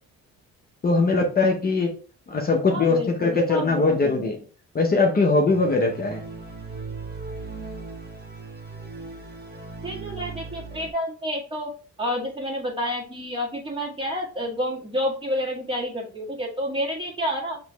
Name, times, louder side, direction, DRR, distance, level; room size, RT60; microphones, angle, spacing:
voice 1, 0.8-1.9 2.3-4.4 4.7-6.2, left 3 dB, 30° left, 0 dB, 0.8 m, -21 dB
voice 2, 2.7-4.3 9.8-11.7 12.0-17.6, equal, 15° right, -3 dB, 1.7 m, -29 dB
sound 1, 5.5-10.9, right 4 dB, 35° right, 1.0 m, -38 dB
6.1 x 3.0 x 2.3 m, 0.39 s
cardioid pair, 90°, 30 cm